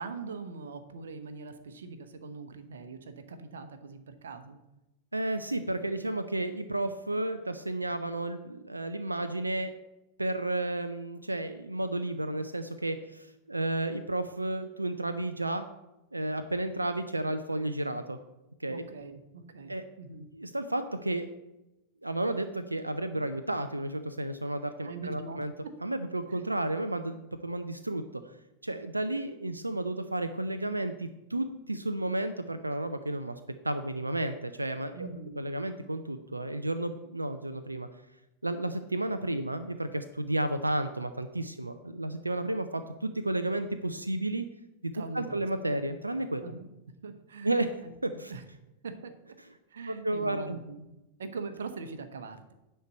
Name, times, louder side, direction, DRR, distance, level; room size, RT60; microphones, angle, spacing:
voice 1, 0.0-4.6 18.7-20.2 24.8-25.7 26.3-26.4 34.9-35.4 44.9-45.4 46.4-46.7 47.0-48.4 48.8-49.1 49.7-50.9 51.2-52.5, right 4 dB, 65° right, 9 dB, 1.0 m, -42 dB
voice 2, 5.1-9.7 10.2-15.7 16.1-18.2 18.6-18.8 19.7-19.9 20.3-21.3 22.0-25.5 25.8-28.0 28.6-33.4 33.6-35.1 35.4-37.9 38.4-44.4 44.8-46.4 47.4-47.7 48.0-48.3 49.9-50.6, right 1 dB, 85° right, 9 dB, 0.5 m, -32 dB
9.4 x 4.5 x 7.7 m, 0.95 s
figure-of-eight pair, 90°, 0 cm